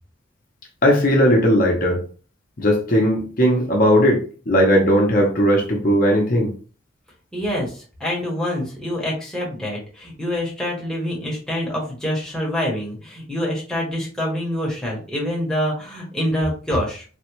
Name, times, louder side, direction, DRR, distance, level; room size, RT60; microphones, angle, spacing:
voice 1, 0.8-2.0 2.6-6.5, equal, 40° left, 0.7 m, -17 dB
voice 2, 7.3-17.0, equal, 5° left, 0.9 m, -26 dB
3.3 x 2.2 x 3.0 m
head